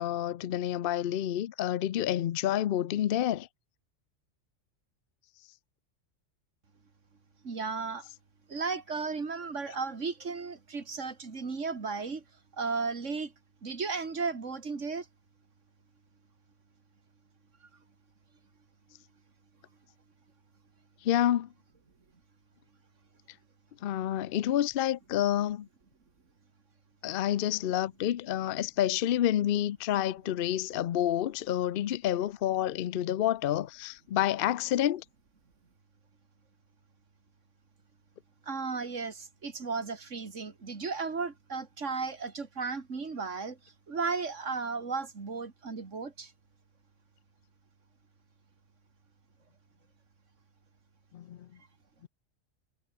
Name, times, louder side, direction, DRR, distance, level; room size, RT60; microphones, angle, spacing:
voice 1, 0.0-3.5 21.0-21.5 23.8-25.7 27.0-35.0 51.1-51.5, left 11 dB, 55° left, 0.7 m, -29 dB
voice 2, 7.4-8.1 8.5-12.2 12.6-13.3 13.6-15.1 38.5-46.3, right 4 dB, 75° right, 2.6 m, -35 dB
omnidirectional pair, 1.3 m